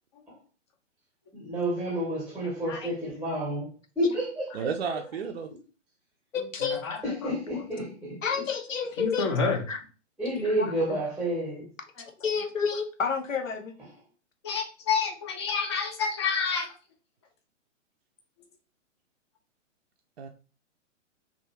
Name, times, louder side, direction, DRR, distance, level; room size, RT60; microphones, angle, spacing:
voice 1, 1.3-5.0 7.0-8.2 10.2-11.7, right 1 dB, 5° right, 0.7 m, -30 dB
voice 2, 4.5-5.5 20.2-20.3, right 6 dB, 55° right, 0.4 m, -32 dB
voice 3, 6.3-7.0 8.2-9.8 10.3-10.7 12.2-13.7, left 6 dB, 85° left, 0.7 m, -30 dB
voice 4, 9.0-9.6 14.4-16.7, left 5 dB, 25° left, 0.4 m, -28 dB
2.7 x 2.4 x 2.8 m
figure-of-eight pair, 120°, 38 cm